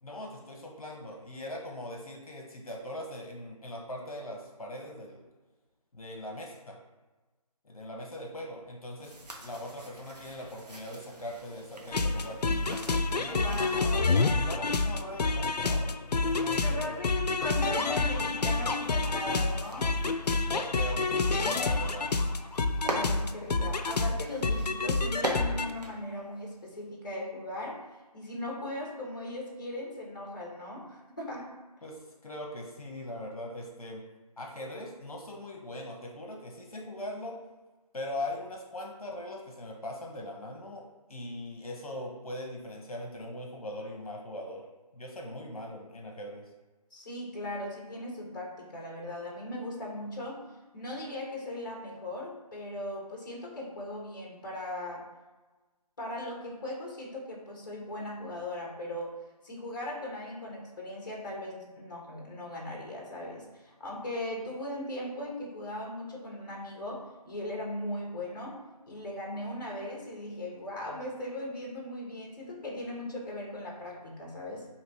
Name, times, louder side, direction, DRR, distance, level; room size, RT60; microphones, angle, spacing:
voice 1, 0.0-5.2 5.9-6.8 7.6-9.1 9.4-12.4 13.1-13.6 13.9-16.0 16.3-17.0 20.4-22.1 31.8-34.0 34.4-37.4 37.9-40.8 41.1-44.6 44.9-46.5, left 1 dB, 65° left, 0 dB, 0.9 m, -41 dB
sound 1, 9.0-14.0 15.0-26.9, right 1 dB, 85° right, 1.0 m, -43 dB
sound 2, 11.9-25.7, left 3 dB, 90° left, 0.4 m, -28 dB
voice 2, 13.2-14.2 16.6-19.9 22.8-27.8 28.1-31.5 46.9-50.4 50.7-55.0 56.0-59.1 59.4-68.6 68.9-74.7, left 1 dB, 30° left, -2 dB, 0.9 m, -38 dB
3.2 x 2.8 x 4.3 m, 1.2 s
figure-of-eight pair, 165°, 20 cm